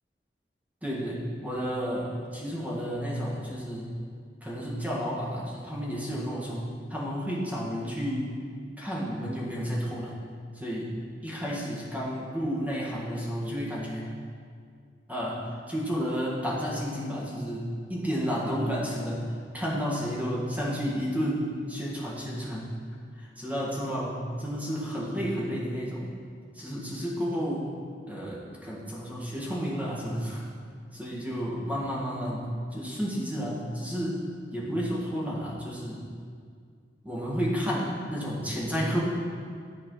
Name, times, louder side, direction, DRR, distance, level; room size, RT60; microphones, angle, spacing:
voice 1, 0.8-3.8 4.4-6.6 6.9-8.3 8.8-10.1 10.5-10.9 11.2-14.1 15.1-19.2 19.5-22.7 23.2-26.1 26.5-27.7 28.1-30.4 30.9-32.4 32.7-34.2 34.5-36.0 37.0-39.0, equal, 10° right, -6 dB, 1.6 m, -31 dB
12.0 x 4.7 x 3.9 m, 2.2 s
head